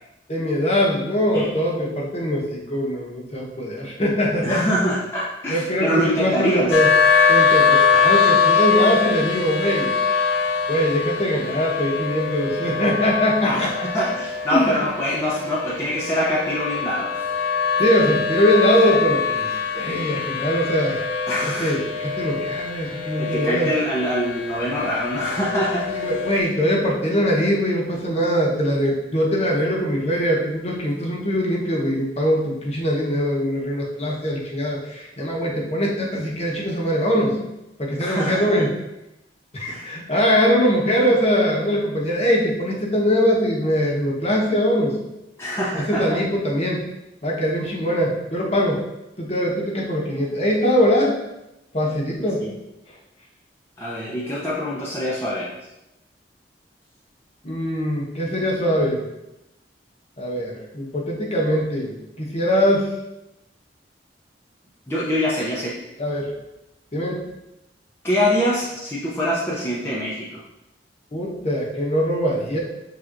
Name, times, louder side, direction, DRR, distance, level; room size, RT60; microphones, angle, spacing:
voice 1, 0.3-4.6 5.5-6.9 7.3-9.9 10.7-13.9 14.5-14.8 17.8-21.0 21.4-23.7 25.9-37.4 37.8-38.7 39.5-45.0 45.7-46.8 47.2-48.8 49.2-51.2 51.7-52.5 57.4-59.0 60.2-62.9 66.0-66.3 66.9-67.2 71.1-72.6, equal, 35° left, -2 dB, 0.9 m, -22 dB
voice 2, 4.4-6.8 13.4-17.1 21.3-21.8 23.2-25.9 38.0-38.6 39.7-39.9 45.4-46.0 52.4-52.5 53.8-55.5 64.9-65.8 68.0-70.4, equal, 15° left, -7 dB, 0.6 m, -24 dB
sound 1, 6.7-26.4, left 5 dB, 90° left, 0.5 m, -23 dB
6.0 x 3.3 x 2.5 m, 0.91 s
head